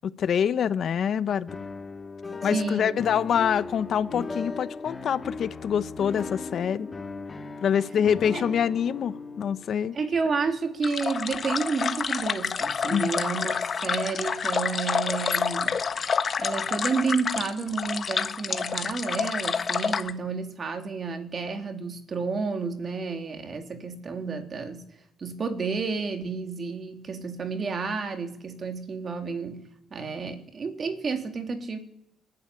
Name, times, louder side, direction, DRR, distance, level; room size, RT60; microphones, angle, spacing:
voice 1, 0.0-1.5 2.4-6.9 7.6-10.0 12.9-13.2, left 8 dB, 60° left, 0.9 m, -25 dB
sound 1, 1.5-11.4, left 4 dB, 30° left, 2.0 m, -38 dB
voice 2, 2.5-3.0 8.3-8.4 9.9-15.8 16.4-24.8 25.2-29.6 29.9-31.8, right 4 dB, 45° right, 3.3 m, -30 dB
sound 2, 10.8-20.1, left 6 dB, 45° left, 1.3 m, -28 dB
27.0 x 11.5 x 9.9 m
cardioid pair, 90°, 0 cm